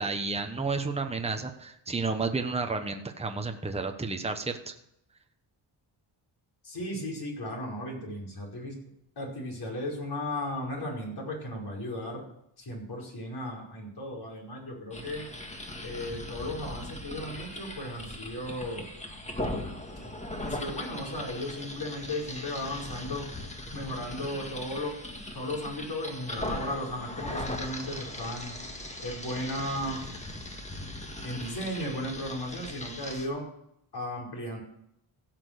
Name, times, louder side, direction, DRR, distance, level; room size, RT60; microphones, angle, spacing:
voice 1, 0.0-4.7, right 4 dB, 15° right, 5 dB, 1.1 m, -31 dB
voice 2, 6.6-8.8 9.2-12.3 12.6-15.3 15.8-18.9 20.0-20.1 20.4-23.3 23.7-25.0 25.3-28.6 29.0-30.0 31.2-33.5 33.9-34.6, left 1 dB, 50° left, -2 dB, 5.2 m, -35 dB
sound 1, 14.9-33.3, left 1 dB, 15° left, 1.8 m, -39 dB
15.5 x 6.1 x 6.6 m, 0.76 s
cardioid pair, 105°, 48 cm